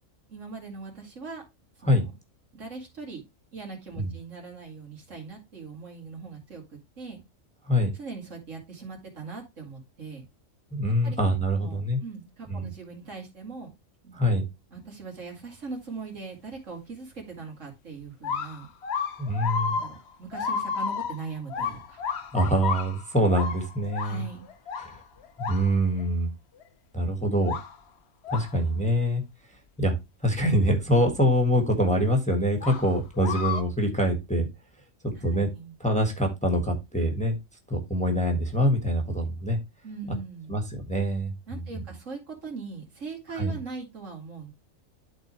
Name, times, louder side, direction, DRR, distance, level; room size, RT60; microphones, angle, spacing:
voice 1, 0.3-1.4 1.8-2.1 2.5-3.2 3.5-7.2 7.9-10.3 11.0-11.2 11.5-13.7 14.0-14.2 14.7-18.7 19.7-22.0 24.0-24.5 35.1-35.8 39.8-40.6 41.5-44.5, right 4 dB, 70° right, 1 dB, 2.7 m, -40 dB
voice 2, 10.7-12.0 12.5-12.7 14.1-14.4 19.2-19.8 22.3-24.2 24.8-25.0 25.4-26.3 26.9-27.5 28.3-29.2 29.8-29.9 30.2-34.5 35.2-35.5 35.8-37.4 37.7-39.6 40.5-41.3 43.3-43.6, equal, 5° left, 2 dB, 1.4 m, -24 dB
sound 1, 18.0-26.0 26.6-26.7 27.4-27.8 28.2-28.6 31.0-31.1 32.6-33.6, left 6 dB, 55° left, 1.1 m, -32 dB
12.0 x 4.1 x 3.0 m, 0.22 s
omnidirectional pair, 1.4 m